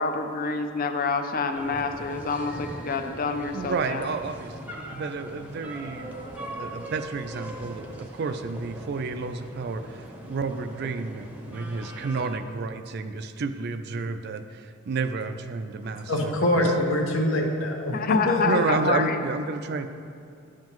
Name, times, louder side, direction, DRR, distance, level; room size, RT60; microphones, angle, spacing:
voice 1, 0.0-4.1 17.9-19.2, left 4 dB, 45° left, 7 dB, 0.5 m, -27 dB
sound 1, 1.5-12.4, right 1 dB, 10° right, 0.7 m, -41 dB
voice 2, 3.5-6.2 6.5-16.7 18.4-19.9, right 4 dB, 50° right, 9 dB, 0.4 m, -31 dB
voice 3, 15.8-18.4, left 1 dB, 70° left, 1 dB, 1.1 m, -24 dB
11.0 x 7.4 x 3.0 m, 2.5 s
head